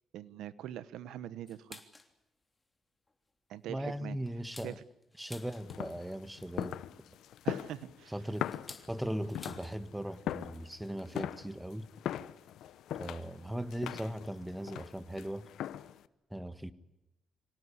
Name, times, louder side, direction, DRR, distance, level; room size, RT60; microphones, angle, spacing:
voice 1, 0.1-1.8 3.5-4.2 4.6-4.7 7.4-8.1, right 11 dB, 85° right, 1.0 m, -42 dB
sound 1, 1.5-2.1 2.6-2.7 3.1-3.3 3.8-6.1 7.3-9.8 10.1-10.2 10.5-10.8 11.7-11.8 12.7-12.8 13.7-13.8 14.2-14.3 14.4-14.6, left 2 dB, 20° left, 3.2 m, -53 dB
voice 2, 3.7-4.8 5.2-6.8 8.1-8.5 8.9-11.9 13.0-15.5 16.3-16.7, right 1 dB, 5° right, 1.5 m, -38 dB
sound 2, 5.4-16.1, left 11 dB, 85° left, 0.8 m, -41 dB
26.0 x 18.0 x 9.9 m
cardioid pair, 85°, 0 cm